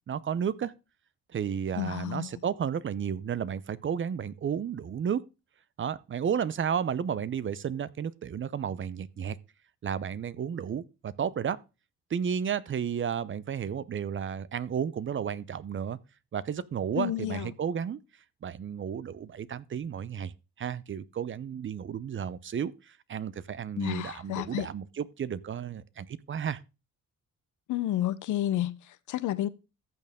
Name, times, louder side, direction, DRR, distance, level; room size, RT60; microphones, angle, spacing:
voice 1, 0.1-0.7 1.3-5.2 5.8-9.4 9.8-11.6 12.1-16.0 16.3-18.0 18.4-20.3 20.6-26.6, right 8 dB, 40° right, 0.7 m, -32 dB
voice 2, 1.8-2.4 16.9-17.5 23.8-24.7 27.7-29.5, left 13 dB, 80° left, 0.8 m, -31 dB
14.0 x 6.8 x 3.6 m
cardioid pair, 90°, 30 cm